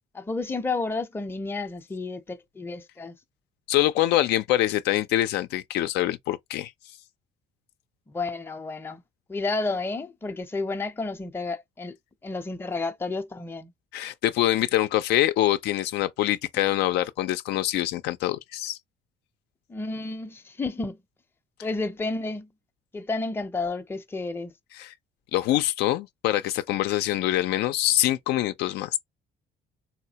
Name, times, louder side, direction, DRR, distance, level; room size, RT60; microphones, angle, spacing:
voice 1, 0.1-3.2 8.1-9.0 9.3-12.0 12.2-13.7 19.7-21.0 21.6-22.5 22.9-24.5, left 3 dB, 15° left, 0.5 m, -31 dB
voice 2, 3.7-6.7 13.9-18.8 24.7-24.9 25.3-29.0, left 14 dB, 80° left, 0.4 m, -25 dB
4.1 x 2.2 x 2.7 m
cardioid pair, 110°, 17 cm